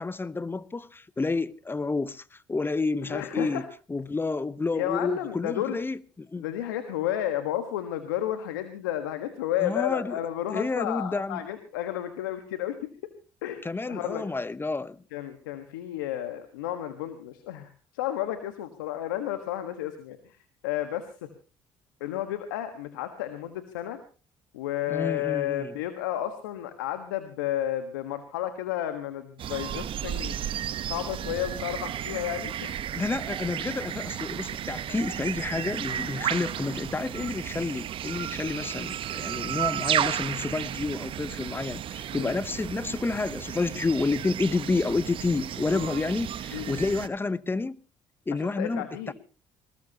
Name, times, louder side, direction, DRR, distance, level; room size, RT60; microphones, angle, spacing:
voice 1, 0.0-3.6 3.9-6.4 9.6-10.2 10.5-11.4 13.6-15.0 24.9-25.7 32.9-47.8 48.3-49.1, left 3 dB, 20° left, 0.9 m, -30 dB
voice 2, 3.1-3.6 4.7-5.8 6.4-12.8 13.4-14.2 15.1-21.3 22.0-24.0 24.5-30.4 30.8-32.9 42.1-42.3 45.7-45.8 46.5-46.8 48.3-49.1, left 12 dB, 90° left, 1.4 m, -32 dB
sound 1, 29.4-47.1, right 10 dB, 55° right, 1.0 m, -33 dB
20.5 x 20.0 x 2.9 m
hypercardioid pair, 65°, 10 cm